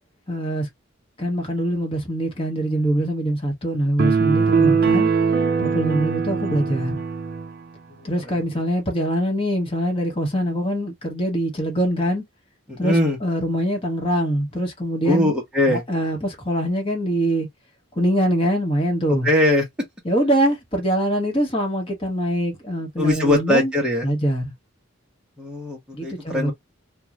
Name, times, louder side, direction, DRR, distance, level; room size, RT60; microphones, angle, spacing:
voice 1, 0.3-0.7 1.2-5.1 5.6-7.0 8.0-12.2 12.8-15.3 15.7-17.5 18.0-19.3 20.0-23.7 24.0-24.5 25.9-26.5, equal, 25° left, 1.0 m, -23 dB
sound 1, 4.0-7.5, right 5 dB, 45° right, 0.4 m, -21 dB
voice 2, 12.7-13.2 15.1-15.8 19.2-19.6 23.0-24.1 25.4-26.5, left 1 dB, 5° right, 0.8 m, -21 dB
2.5 x 2.3 x 2.9 m
head